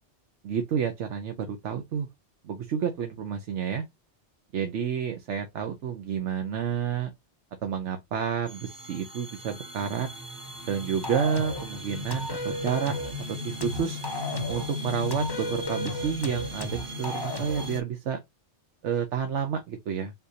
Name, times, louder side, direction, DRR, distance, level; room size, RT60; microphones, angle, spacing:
voice 1, 0.4-2.1 2.4-3.8 4.5-7.1 7.6-10.1 10.7-12.9 13.3-14.0 14.5-18.2 18.8-20.1, right 7 dB, 85° right, 1.1 m, -30 dB
sound 1, 8.5-17.8, left 3 dB, 55° right, 1.4 m, -37 dB
sound 2, 11.0-11.7 12.1-13.2 13.6-14.7 15.1-17.7, left 1 dB, 25° left, 0.9 m, -34 dB
5.7 x 2.7 x 2.7 m
omnidirectional pair, 1.2 m